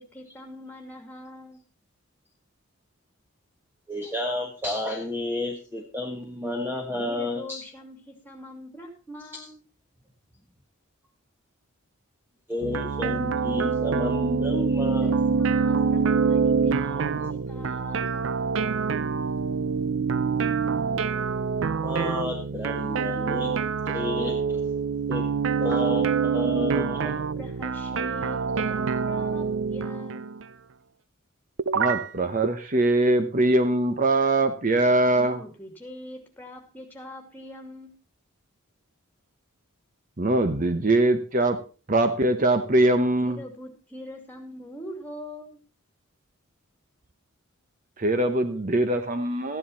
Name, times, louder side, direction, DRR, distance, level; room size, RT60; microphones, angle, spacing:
voice 1, 0.0-1.6 6.9-9.6 15.0-18.3 27.0-30.3 35.2-38.0 43.2-45.6, left 1 dB, 10° left, 3 dB, 2.6 m, -43 dB
voice 2, 3.9-7.6 9.3-9.4 12.5-15.2 17.1-17.3 17.6-17.7 21.8-23.5 23.8-24.6 25.1-25.3 25.6-27.1, left 1 dB, 10° right, 2 dB, 1.3 m, -31 dB
sound 1, 12.6-30.4 31.6-32.1 32.4-32.5, right 5 dB, 60° right, 0.5 m, -26 dB
voice 3, 31.7-35.4 40.2-41.6 41.9-43.4 48.0-49.6, right 2 dB, 40° right, 8 dB, 0.9 m, -22 dB
14.0 x 10.0 x 4.2 m, 0.35 s
head